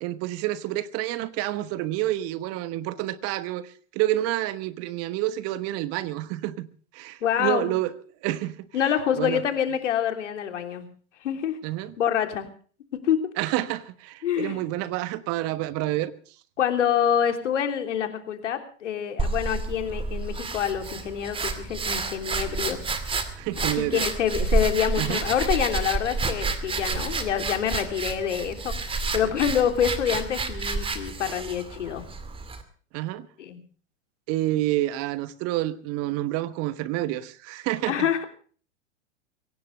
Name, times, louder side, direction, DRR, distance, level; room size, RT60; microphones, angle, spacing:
voice 1, 0.0-6.7 6.9-7.9 8.2-8.7 9.1-9.4 11.6-11.9 13.4-16.1 23.4-24.0 25.0-25.2 32.9-33.3 34.3-38.1, right 15 dB, 40° right, 1.3 m, -28 dB
voice 2, 7.2-7.7 8.7-10.9 11.2-11.6 12.0-12.5 13.0-13.2 14.2-14.6 16.6-22.8 23.6-32.1 33.4-33.6 37.9-38.2, left 9 dB, 70° left, 3.4 m, -26 dB
sound 1, 19.2-32.6, right 3 dB, 15° right, 2.3 m, -30 dB
23.5 x 17.5 x 3.4 m
hypercardioid pair, 110°, 37 cm